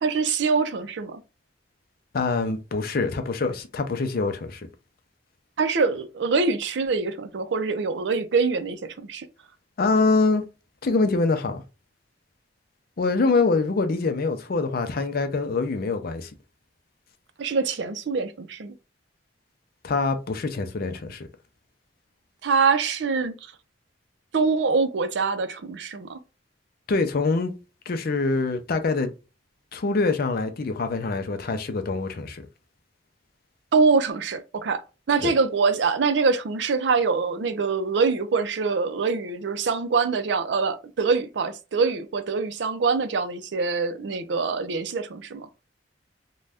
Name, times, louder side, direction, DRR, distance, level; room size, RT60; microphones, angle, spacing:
voice 1, 0.0-1.2 5.6-9.2 17.4-18.7 22.4-23.4 24.3-26.2 33.7-34.8 35.1-45.5, right 4 dB, 70° right, 0.5 m, -24 dB
voice 2, 2.1-4.7 9.8-10.4 10.8-11.6 13.0-16.3 19.8-21.3 26.9-27.5 27.9-29.1 29.7-32.4 35.2-35.3, left 3 dB, 55° left, 0.5 m, -24 dB
2.5 x 2.2 x 3.3 m
head